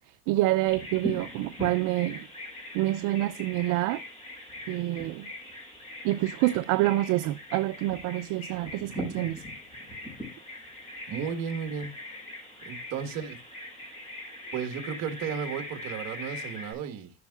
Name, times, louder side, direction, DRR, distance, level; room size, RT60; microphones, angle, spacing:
voice 1, 0.3-2.3 2.7-4.0 4.7-5.3 6.0-9.4, right 17 dB, 70° right, 0.5 m, -27 dB
Bird vocalization bird call bird song, 0.7-16.7, left 1 dB, 20° left, 4.0 m, -41 dB
voice 2, 11.1-11.9 12.6-13.4 14.5-17.1, right 7 dB, 55° right, 1.5 m, -34 dB
13.5 x 5.5 x 2.4 m
cardioid pair, 170°, 32 cm